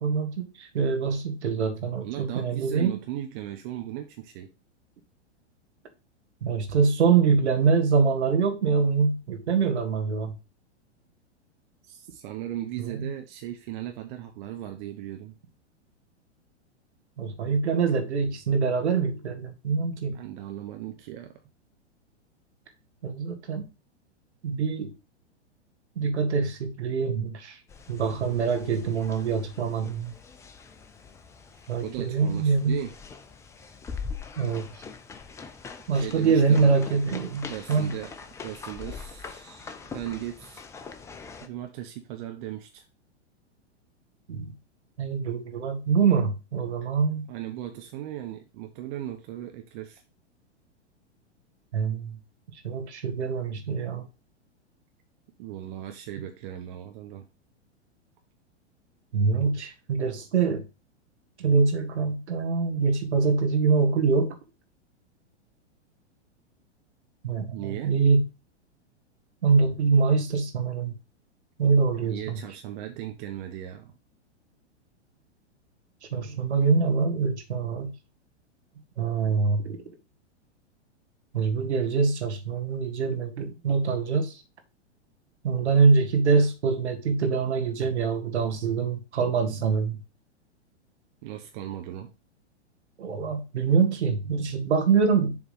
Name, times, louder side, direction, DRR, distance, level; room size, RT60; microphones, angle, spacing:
voice 1, 0.0-2.9 6.4-10.3 12.8-13.1 17.2-20.2 23.0-23.7 24.4-24.9 26.0-27.6 27.9-30.1 31.7-32.8 34.4-34.7 35.9-37.9 44.3-44.5 45.0-47.3 51.7-52.2 52.6-54.0 59.1-60.6 61.4-64.4 67.2-68.2 69.4-70.9 71.6-72.4 76.1-77.9 79.0-79.8 81.3-84.4 85.4-90.0 93.0-95.4, right 5 dB, 70° right, 1.9 m, -24 dB
voice 2, 2.0-4.5 11.9-15.4 20.0-21.3 31.8-32.9 35.9-36.8 37.5-38.1 38.4-40.6 41.4-42.8 47.3-50.0 55.4-57.2 67.5-67.9 72.0-73.9 91.2-92.1, right 12 dB, 45° right, 1.1 m, -37 dB
sound 1, 27.7-41.5, left 5 dB, 10° left, 0.4 m, -42 dB
7.2 x 3.6 x 5.0 m
figure-of-eight pair, 105°, 35 cm